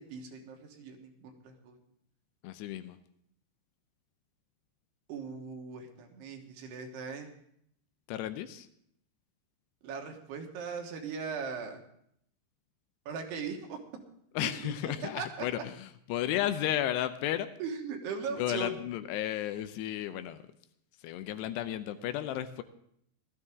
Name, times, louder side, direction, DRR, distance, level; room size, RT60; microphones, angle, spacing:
voice 1, 0.0-1.8 5.1-7.3 9.8-11.8 13.1-13.8 15.2-15.5 17.6-18.8, right 5 dB, 75° right, 3 dB, 3.3 m, -39 dB
voice 2, 2.4-3.0 8.1-8.7 14.4-17.5 18.3-20.4 21.0-22.6, left 12 dB, 85° left, 11 dB, 2.7 m, -33 dB
16.5 x 13.0 x 3.6 m, 0.70 s
omnidirectional pair, 5.0 m